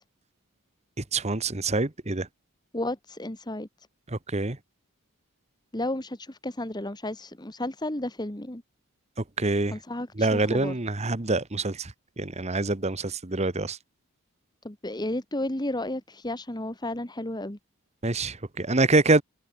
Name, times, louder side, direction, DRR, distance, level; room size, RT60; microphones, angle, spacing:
voice 1, 1.0-2.3 4.1-4.6 9.2-9.8 10.2-13.8 18.0-19.2, right 2 dB, 30° right, 1.3 m, -26 dB
voice 2, 2.7-3.7 5.7-8.6 9.7-10.7 14.6-17.6, left 1 dB, 20° left, 1.7 m, -32 dB
head